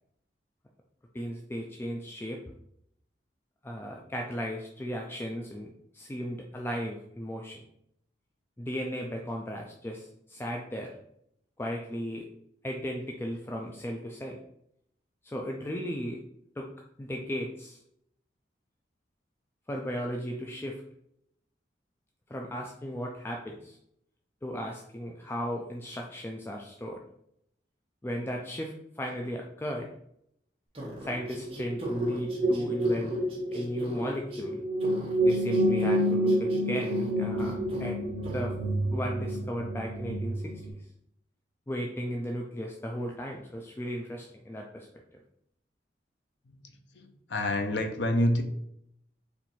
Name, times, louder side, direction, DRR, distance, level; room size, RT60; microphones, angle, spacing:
voice 1, 1.1-2.4 3.6-5.7 5.9-7.6 8.6-10.9 11.6-12.3 12.6-14.4 15.2-16.2 16.6-16.7 17.0-17.8 19.7-20.8 22.3-23.8 24.4-27.0 28.0-29.9 31.0-33.2 33.5-34.6 35.2-38.5 38.9-40.4 40.7-40.8 41.7-44.9, equal, 15° left, 0 dB, 0.3 m, -36 dB
sound 1, 30.7-34.5 34.8-37.1 37.4-37.9 38.2-38.5, equal, 30° right, 1.0 m, -41 dB
sound 2, 31.1-40.7, equal, 65° right, 0.8 m, -28 dB
voice 2, 46.6-48.4, left 1 dB, 75° left, 6 dB, 0.6 m, -28 dB
4.4 x 2.6 x 4.1 m, 0.73 s
head